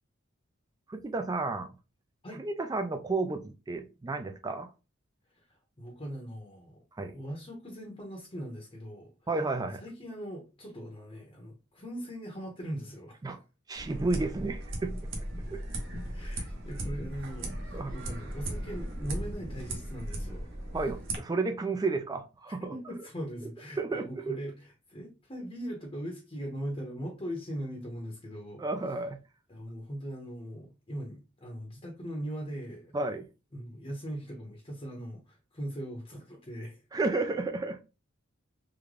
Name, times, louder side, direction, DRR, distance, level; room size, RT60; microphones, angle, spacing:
voice 1, 0.9-1.7 2.4-4.7 7.0-7.2 9.3-9.8 13.2-13.4 13.7-14.9 15.5-15.6 17.7-17.9 20.7-22.7 23.8-24.3 28.6-29.2 32.9-33.3 36.9-37.8, right 3 dB, 20° right, 0.3 m, -32 dB
voice 2, 5.3-6.8 7.1-9.1 9.8-13.4 16.1-20.5 22.5-28.6 29.5-33.0 33.5-36.8, equal, 25° left, 0.8 m, -40 dB
sound 1, 13.7-21.2, right 1 dB, 65° right, 0.9 m, -37 dB
3.6 x 2.1 x 3.2 m
head